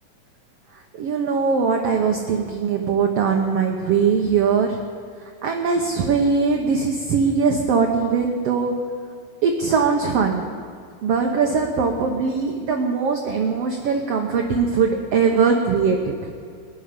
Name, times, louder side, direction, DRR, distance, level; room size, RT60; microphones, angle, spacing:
voice 1, 1.0-4.8 5.4-8.7 9.4-10.5 11.0-16.1, right 5 dB, 70° right, 2 dB, 1.5 m, -21 dB
20.5 x 7.1 x 9.6 m, 2.2 s
omnidirectional pair, 4.0 m